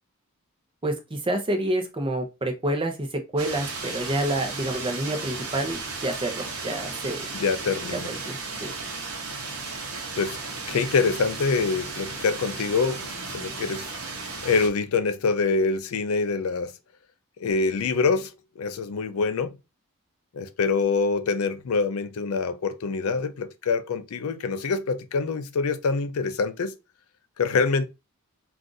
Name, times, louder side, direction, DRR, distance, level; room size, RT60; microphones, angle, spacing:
voice 1, 0.8-7.3 7.9-8.7, right 1 dB, 25° right, 0.6 m, -28 dB
sound 1, 3.4-14.7, right 4 dB, 70° right, 0.8 m, -35 dB
voice 2, 7.3-8.1 10.2-10.4 10.7-13.1 13.3-13.9 14.4-16.7 17.4-18.3 18.6-19.6 20.3-26.8 27.4-27.9, left 4 dB, 70° left, 0.4 m, -25 dB
2.5 x 2.4 x 3.8 m
head